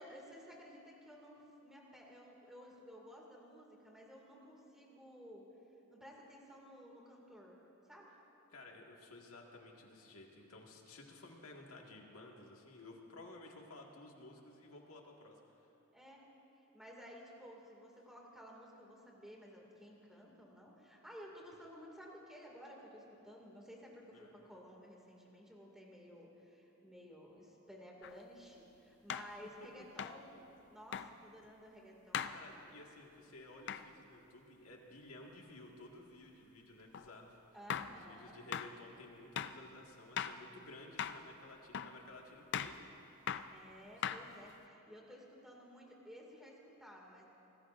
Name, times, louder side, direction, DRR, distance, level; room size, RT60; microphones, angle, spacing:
voice 1, 0.0-5.5 5.9-7.6 7.9-8.1 15.9-16.3 16.6-32.4 32.7-32.8 37.5-38.4 43.5-47.2, equal, ahead, -2 dB, 2.4 m, -55 dB
voice 2, 8.5-15.7 24.1-24.3 32.2-37.6 37.9-42.8 44.0-44.3, left 2 dB, 80° left, 0 dB, 2.0 m, -55 dB
sound 1, 28.0-28.1 29.1-29.3 30.0-30.2 30.9-31.1 32.1-32.4 33.7-33.9 36.9-37.1 37.7-38.0 38.5-38.7 39.4-39.6 40.2-40.4 41.0-41.2 41.7-42.0 42.5-42.8 43.3-43.5 44.0-44.5, left 8 dB, 55° left, 0.4 m, -39 dB
25.5 x 19.0 x 2.6 m, 2.9 s
head